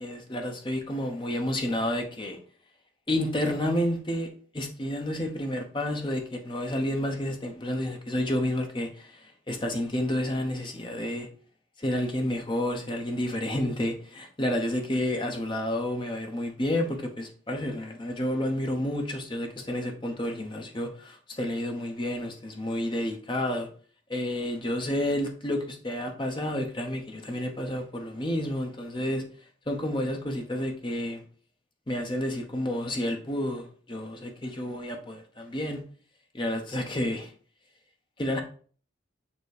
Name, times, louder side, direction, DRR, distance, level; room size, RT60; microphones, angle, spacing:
voice 1, 0.0-2.4 3.1-4.3 4.5-11.3 11.8-23.7 24.1-29.2 29.7-31.2 31.9-35.8 36.3-37.3 38.2-38.4, left 1 dB, 25° left, 0.9 m, -30 dB
6.8 x 3.0 x 4.9 m
head